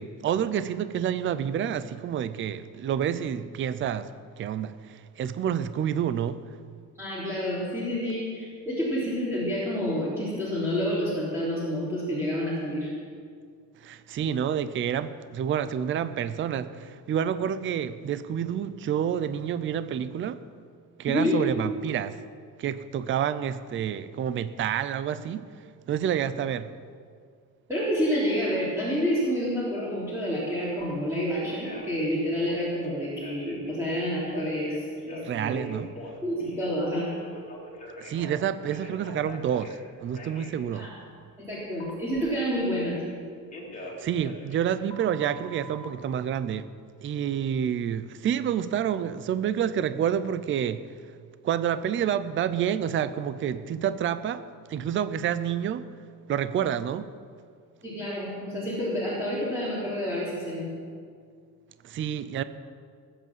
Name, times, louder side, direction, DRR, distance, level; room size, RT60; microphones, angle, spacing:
voice 1, 0.0-4.1 4.4-6.4 13.8-20.4 21.0-22.2 22.6-25.5 25.9-26.7 35.2-35.9 38.0-40.9 44.0-46.7 47.0-50.9 51.4-55.9 56.3-57.1 61.8-62.4, right 9 dB, 35° right, 0.5 m, -28 dB
voice 2, 7.0-12.9 21.1-21.4 27.7-35.7 36.2-37.1 40.7-40.9 41.4-43.0 57.8-60.7, equal, 5° right, 3.5 m, -29 dB
Telephone, 30.8-30.9 31.3-32.0 32.3-33.7 34.3-36.8 37.1-39.8 40.1-40.5 41.8-43.2 43.5-45.8, left 1 dB, 20° left, 2.9 m, -43 dB
19.0 x 8.4 x 7.4 m
cardioid pair, 155°, 35 cm